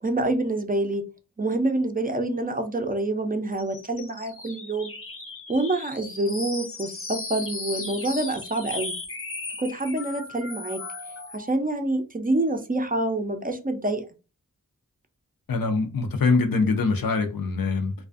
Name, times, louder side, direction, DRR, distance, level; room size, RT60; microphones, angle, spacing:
voice 1, 0.0-1.0 1.4-4.9 5.5-9.0 9.6-10.8 11.3-14.1, right 2 dB, 25° right, 0.4 m, -27 dB
sound 1, 3.5-11.5, left 3 dB, 40° left, 0.6 m, -37 dB
voice 2, 15.5-17.9, left 4 dB, 90° left, 0.5 m, -23 dB
2.4 x 2.3 x 2.4 m
wide cardioid pair, 60°, 33 cm